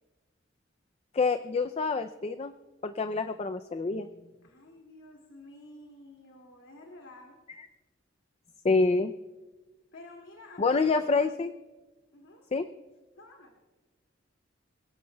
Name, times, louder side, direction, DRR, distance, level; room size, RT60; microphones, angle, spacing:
voice 1, 1.1-2.5 2.8-4.1 8.6-9.1 10.6-11.5 12.5-12.7, left 4 dB, 30° left, 9 dB, 0.4 m, -27 dB
voice 2, 4.4-7.4 9.9-10.9 12.1-12.4 13.1-13.5, left 2 dB, 80° left, 0 dB, 2.3 m, -50 dB
27.0 x 16.5 x 2.3 m, 1.2 s
head